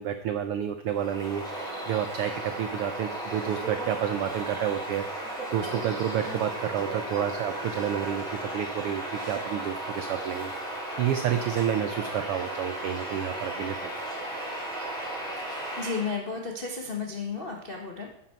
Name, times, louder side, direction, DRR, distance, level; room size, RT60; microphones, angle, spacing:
voice 1, 0.0-14.0, right 9 dB, 85° right, 8 dB, 1.2 m, -30 dB
Bird vocalization bird call bird song, 0.9-16.2, right 1 dB, ahead, 3.5 m, -35 dB
voice 2, 15.5-18.1, left 4 dB, 75° left, 0 dB, 0.5 m, -33 dB
11.0 x 10.0 x 4.5 m, 0.86 s
omnidirectional pair, 3.4 m